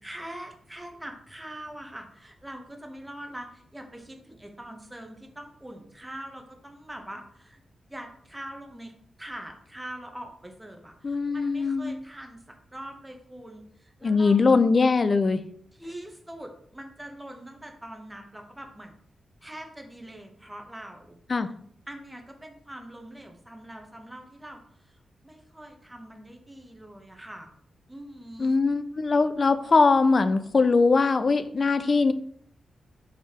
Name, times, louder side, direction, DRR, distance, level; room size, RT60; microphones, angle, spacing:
voice 1, 0.0-7.6 7.9-8.9 9.2-12.4 12.7-14.6 15.7-19.0 19.4-21.2 21.9-25.0 25.2-27.5 27.9-28.6, right 1 dB, 10° right, 3 dB, 0.8 m, -43 dB
voice 2, 11.0-11.9 14.0-15.4 21.3-21.5 28.4-32.1, left 4 dB, 50° left, 12 dB, 0.3 m, -21 dB
4.7 x 3.3 x 2.8 m, 0.64 s
cardioid pair, 75°, 0 cm